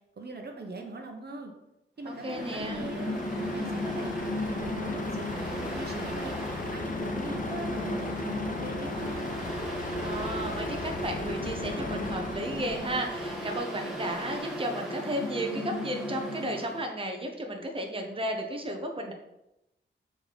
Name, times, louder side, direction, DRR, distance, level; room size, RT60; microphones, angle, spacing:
voice 1, 0.2-1.5 2.0-4.1 4.5-6.4 6.7-8.1 8.5-9.4, right 2 dB, 55° right, 3 dB, 1.1 m, -41 dB
Mechanical fan, 2.0-16.9, left 1 dB, ahead, 2.2 m, -35 dB
voice 2, 2.1-2.8 10.0-19.1, right 1 dB, 25° right, 2 dB, 1.0 m, -34 dB
Truck, 2.4-13.6, left 2 dB, 40° left, 0.9 m, -38 dB
7.6 x 4.7 x 4.2 m, 0.89 s
wide cardioid pair, 85°, 20 cm